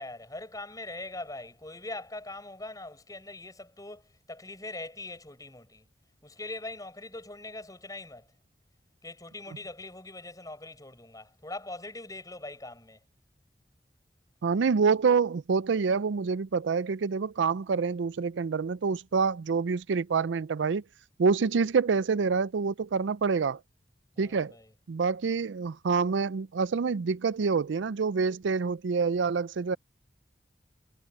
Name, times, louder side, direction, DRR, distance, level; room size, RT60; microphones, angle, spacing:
voice 1, 0.0-5.9 6.2-8.3 9.0-13.0 24.1-24.7, left 2 dB, 20° left, 6.3 m, -42 dB
voice 2, 14.4-20.8 21.2-23.6 24.2-24.5 24.9-29.8, right 5 dB, 80° right, 0.4 m, -27 dB
head